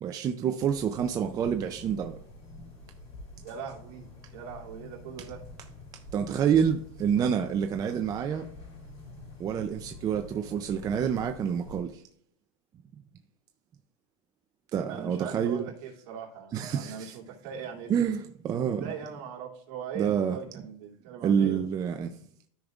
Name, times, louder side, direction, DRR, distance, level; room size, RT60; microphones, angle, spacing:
voice 1, 0.0-2.2 6.1-8.4 9.4-12.0 14.7-15.7 16.5-17.2 17.9-18.8 20.0-20.4 21.2-22.1, right 8 dB, 20° right, 0.4 m, -28 dB
sound 1, 0.6-11.8, left 2 dB, 35° left, 3.3 m, -47 dB
voice 2, 3.4-5.4 14.9-17.9 18.8-21.6, right 7 dB, 55° right, 2.6 m, -40 dB
13.0 x 5.1 x 2.4 m
supercardioid pair, 150°, 17 cm